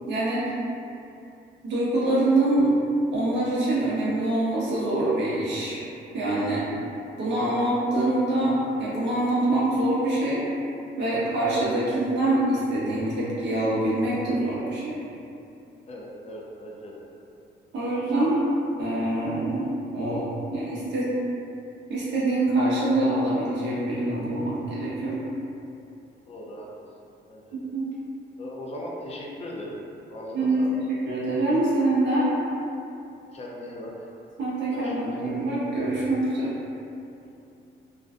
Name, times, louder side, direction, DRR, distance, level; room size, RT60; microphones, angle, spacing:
voice 1, 0.1-0.5 1.6-2.7 3.1-5.8 6.1-6.7 7.2-10.4 11.0-15.0 17.7-18.4 18.8-20.3 20.5-21.1 21.9-25.2 27.5-27.9 30.3-32.3 34.4-36.5, right 1 dB, 65° right, -8 dB, 0.6 m, -25 dB
voice 2, 15.9-17.0 26.3-26.7 27.3-27.4 28.4-29.8 30.1-30.8 33.3-34.1 34.7-35.5, left 1 dB, 35° left, -3 dB, 0.5 m, -38 dB
2.4 x 2.2 x 2.4 m, 2.7 s
cardioid pair, 90°, 20 cm